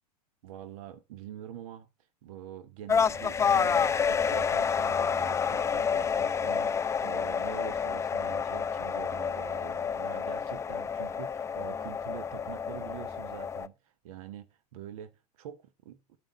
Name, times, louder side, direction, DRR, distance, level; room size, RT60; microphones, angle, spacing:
voice 1, 0.4-1.9 2.2-16.2, right 10 dB, 60° right, 1.1 m, -45 dB
sound 1, 2.9-13.7, left 6 dB, 15° left, 0.5 m, -29 dB
8.9 x 8.9 x 3.9 m
hypercardioid pair, 95°, 20 cm